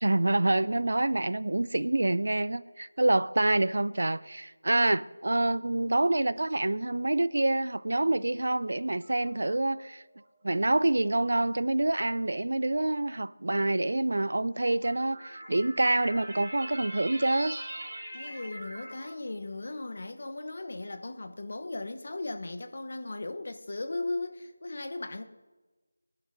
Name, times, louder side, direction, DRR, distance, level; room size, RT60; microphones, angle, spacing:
voice 1, 0.0-10.0 10.4-17.6, right 2 dB, 60° right, 0.4 m, -27 dB
sound 1, 9.0-9.7 10.5-10.6 11.8-11.9 14.0-19.1, right 1 dB, 35° right, 3.1 m, -42 dB
voice 2, 18.1-25.2, left 2 dB, 50° left, 0.9 m, -37 dB
25.0 x 10.5 x 2.7 m
figure-of-eight pair, 165°, 0 cm